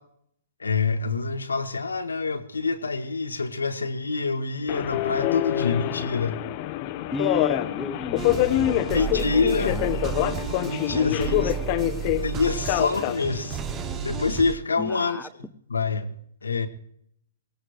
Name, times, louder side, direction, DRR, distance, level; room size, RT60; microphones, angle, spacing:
voice 1, 0.6-6.4 8.9-9.8 10.2-11.5 12.2-13.6 14.0-15.3 15.7-16.1 16.4-16.7, left 4 dB, 75° left, 9 dB, 1.4 m, -26 dB
Subway metro underground, 4.7-14.4, left 14 dB, 35° left, 1.0 m, -26 dB
voice 2, 7.1-8.4 8.7-9.9 10.9-11.8 14.8-15.3, left 1 dB, 5° left, 9 dB, 0.7 m, -35 dB
sound 1, 8.2-14.5, right 8 dB, 20° right, 1.0 m, -32 dB
23.5 x 18.0 x 3.2 m, 0.70 s
figure-of-eight pair, 115°, 0 cm